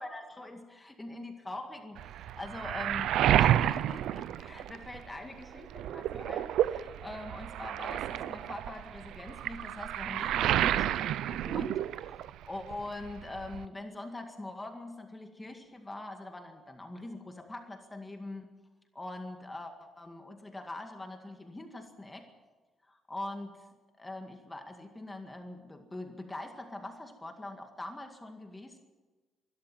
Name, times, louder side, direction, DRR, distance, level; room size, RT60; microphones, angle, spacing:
voice 1, 0.0-3.1 3.4-18.5 18.9-22.3 22.9-23.6 24.0-28.8, left 2 dB, 15° left, 5 dB, 2.0 m, -43 dB
Waves surf, 2.0-5.2 5.5-12.5 12.7-13.7, right 12 dB, 85° right, 0.6 m, -30 dB
23.5 x 12.5 x 9.0 m, 1.3 s
cardioid pair, 130°, 0 cm